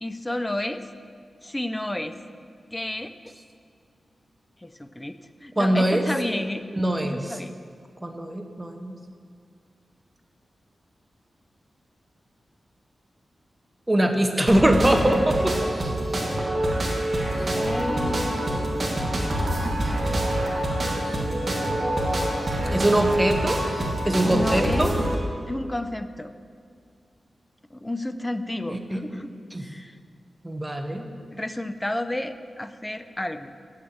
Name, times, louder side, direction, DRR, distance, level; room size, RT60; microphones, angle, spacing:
voice 1, 0.0-0.9 1.4-2.1 2.7-3.3 4.6-6.6 7.0-7.5 16.3-16.6 17.2-18.3 22.7-22.8 24.2-24.9 25.5-26.3 27.7-29.3 29.6-30.0 31.3-33.5, left 1 dB, 10° left, 10 dB, 0.4 m, -31 dB
voice 2, 5.6-6.0 6.7-7.4 8.0-8.9 13.9-15.5 17.4-17.5 22.7-23.6 24.0-24.9 28.7-29.0 29.5-29.7 30.4-31.1, right 1 dB, 10° right, 4 dB, 0.8 m, -22 dB
sound 1, 14.5-25.1, right 1 dB, 35° right, 1.6 m, -26 dB
Wind instrument woodwind instrument, 17.6-25.2, left 1 dB, 80° left, 1.3 m, -35 dB
7.2 x 6.7 x 7.8 m, 2.2 s
wide cardioid pair, 135°, 0 cm